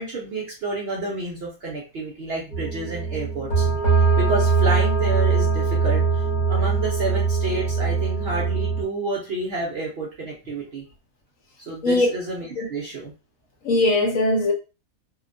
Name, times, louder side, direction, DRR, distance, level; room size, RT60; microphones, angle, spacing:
voice 1, 0.0-3.7 4.2-10.9 11.6-13.1, right 2 dB, 60° right, 0.6 m, -30 dB
sound 1, 2.5-8.8, right 5 dB, 40° left, 0.8 m, -21 dB
voice 2, 13.6-14.5, left 2 dB, 65° left, 1.1 m, -20 dB
2.8 x 2.1 x 2.5 m
omnidirectional pair, 1.6 m